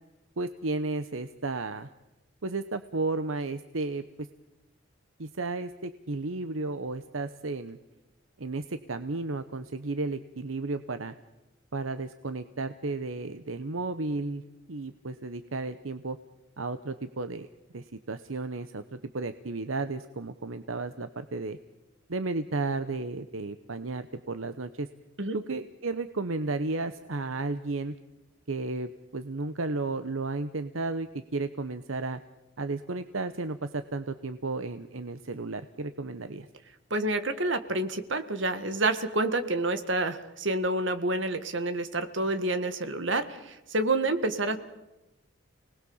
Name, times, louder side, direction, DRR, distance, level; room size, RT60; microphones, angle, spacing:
voice 1, 0.4-1.9 2.4-4.3 5.2-7.8 8.4-11.1 11.7-16.2 16.6-17.5 17.7-21.6 22.1-24.9 25.3-28.0 28.5-32.2 32.6-36.5, right 3 dB, 85° right, 10 dB, 0.9 m, -33 dB
voice 2, 36.9-44.6, right 2 dB, 70° right, 9 dB, 1.8 m, -28 dB
29.5 x 19.5 x 7.2 m, 0.97 s
head